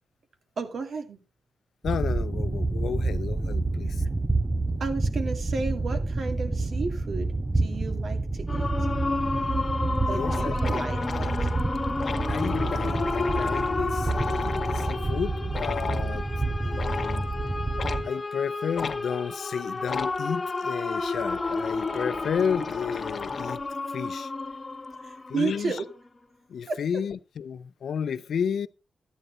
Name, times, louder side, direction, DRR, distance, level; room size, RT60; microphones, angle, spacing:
voice 1, 0.6-1.2 4.8-8.7 10.1-11.3 25.0-25.9 26.7-26.8, right 4 dB, 60° right, 2.3 m, -33 dB
voice 2, 1.8-4.0 10.1-10.5 12.3-16.2 16.6-17.3 18.0-23.6 23.9-24.3 25.3-25.8 26.5-28.7, left 7 dB, 80° left, 0.6 m, -32 dB
sound 1, 1.8-18.1, right 2 dB, 15° right, 0.5 m, -28 dB
sound 2, 8.5-26.2, left 3 dB, 25° left, 1.5 m, -32 dB
sound 3, 9.5-9.6 9.9-10.0 10.2-15.0 15.5-16.1 16.7-17.2 17.8-18.0 18.7-19.0 19.8-20.2 20.9-23.7, left 5 dB, 45° left, 1.1 m, -35 dB
12.5 x 9.1 x 4.0 m
wide cardioid pair, 140°, 0 cm